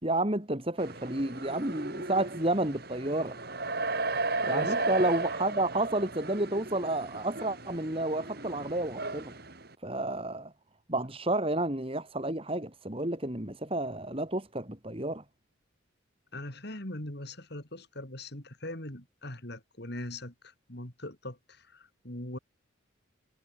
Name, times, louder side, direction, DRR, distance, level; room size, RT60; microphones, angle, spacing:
voice 1, 0.0-3.4 4.4-9.3 9.8-10.5 10.9-15.2, right 1 dB, 25° right, 2.5 m, -31 dB
sound 1, 0.8-9.7, right 3 dB, 50° right, 3.4 m, -35 dB
voice 2, 4.4-4.9 16.3-22.4, left 1 dB, 50° left, 3.9 m, -41 dB
head